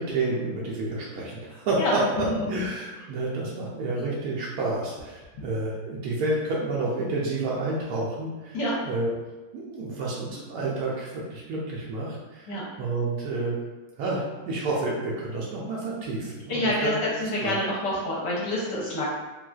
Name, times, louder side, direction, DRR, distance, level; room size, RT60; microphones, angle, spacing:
voice 1, 0.0-9.1 9.5-12.5 12.8-13.6 14.0-17.6, right 2 dB, 75° right, -5 dB, 0.8 m, -29 dB
voice 2, 16.5-16.9 17.2-19.1, left 1 dB, 70° left, -5 dB, 1.3 m, -27 dB
3.9 x 2.4 x 2.3 m, 1.2 s
omnidirectional pair, 2.1 m